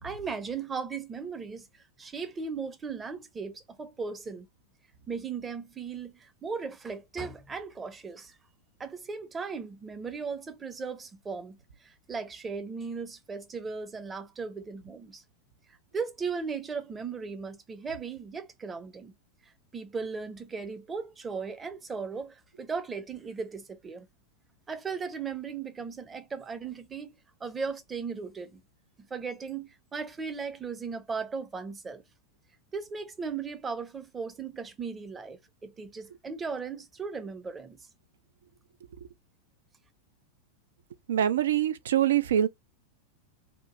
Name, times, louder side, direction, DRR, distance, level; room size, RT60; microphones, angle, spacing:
voice 1, 0.0-1.7 2.0-4.5 5.1-8.4 8.8-15.2 15.9-19.1 19.4-24.1 24.7-27.1 27.4-28.6 29.0-32.0 32.7-37.8, right 5 dB, 15° right, 0.7 m, -37 dB
voice 2, 41.1-42.5, right 10 dB, 60° right, 0.4 m, -24 dB
2.9 x 2.3 x 2.9 m
figure-of-eight pair, 90°, 0 cm